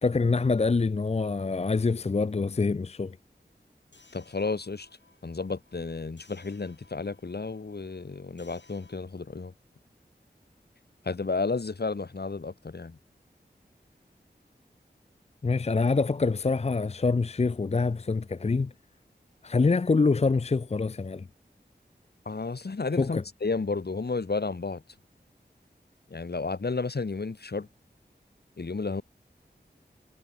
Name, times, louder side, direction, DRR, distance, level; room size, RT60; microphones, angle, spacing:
voice 1, 0.0-3.2 15.4-18.7 19.4-21.3 23.0-23.2, left 4 dB, 35° left, 0.5 m, -25 dB
sound 1, 3.9-9.0, left 3 dB, 80° left, 7.8 m, -61 dB
voice 2, 4.1-4.9 5.2-9.5 11.0-13.0 22.2-24.8 26.1-27.7 28.6-29.0, left 4 dB, 65° left, 1.6 m, -32 dB
wide cardioid pair, 65°, 18 cm